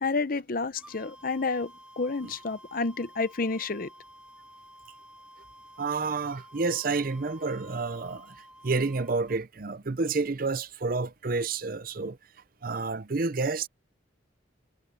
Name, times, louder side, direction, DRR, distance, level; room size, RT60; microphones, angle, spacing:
voice 1, 0.0-3.9, left 3 dB, 50° left, 0.8 m, -30 dB
sound 1, 0.7-9.4, equal, 5° right, 2.6 m, -52 dB
voice 2, 5.8-8.4 8.6-12.2 12.6-13.7, right 4 dB, 50° right, 0.6 m, -29 dB
head